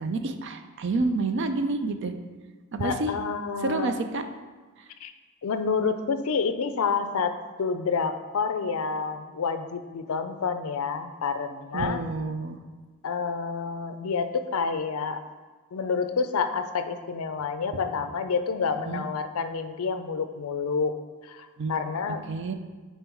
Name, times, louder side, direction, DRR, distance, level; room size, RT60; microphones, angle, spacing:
voice 1, 0.0-2.1 2.7-3.1 3.6-4.3 11.7-12.6 18.8-19.1 21.6-21.8 22.3-22.5, right 3 dB, 55° right, 8 dB, 0.4 m, -28 dB
voice 2, 2.8-4.0 5.0-5.1 5.4-12.0 13.0-15.2 15.7-21.0 21.2-22.3, left 5 dB, 70° left, 9 dB, 0.4 m, -28 dB
5.4 x 4.4 x 4.4 m, 1.4 s
head